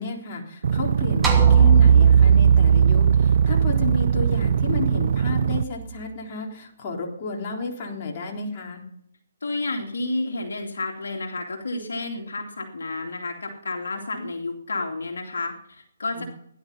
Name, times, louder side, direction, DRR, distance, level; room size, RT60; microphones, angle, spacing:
voice 1, 0.0-8.8 16.1-16.2, left 4 dB, 35° left, -1 dB, 3.8 m, -32 dB
sound 1, 0.6-5.6, right 7 dB, 60° right, 0.6 m, -23 dB
sound 2, 1.2-5.7, right 7 dB, 10° right, 2.5 m, -18 dB
voice 2, 9.4-16.2, left 2 dB, 75° left, 3 dB, 2.6 m, -30 dB
16.5 x 11.0 x 5.6 m, 0.71 s
hypercardioid pair, 145°, 0 cm